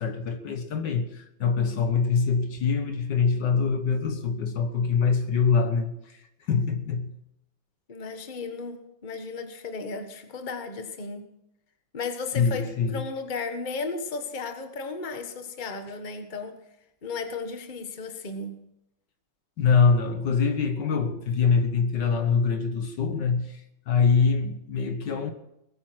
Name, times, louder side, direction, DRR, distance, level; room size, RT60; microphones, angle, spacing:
voice 1, 0.0-7.2 12.3-13.0 19.6-23.6 23.9-25.3, left 5 dB, 60° left, 1.7 m, -24 dB
voice 2, 7.9-11.2 11.9-16.5 17.0-18.5, left 4 dB, 25° left, 1.3 m, -35 dB
20.5 x 9.1 x 6.2 m
omnidirectional pair, 2.2 m